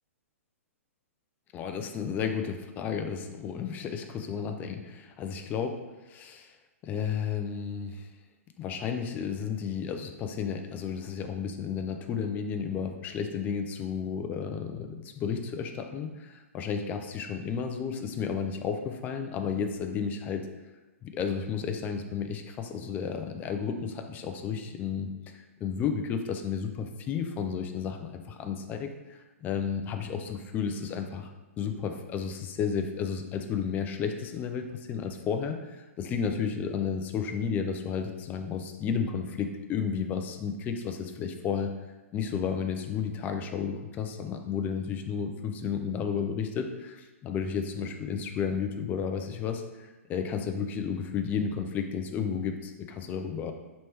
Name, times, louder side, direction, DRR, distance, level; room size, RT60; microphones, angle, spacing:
voice 1, 1.5-6.5 6.8-8.1 8.6-20.5 21.0-31.3 31.6-41.7 42.1-53.5, left 6 dB, 20° left, 5 dB, 0.4 m, -32 dB
3.3 x 2.9 x 4.5 m, 1.1 s
hypercardioid pair, 135°, 8 cm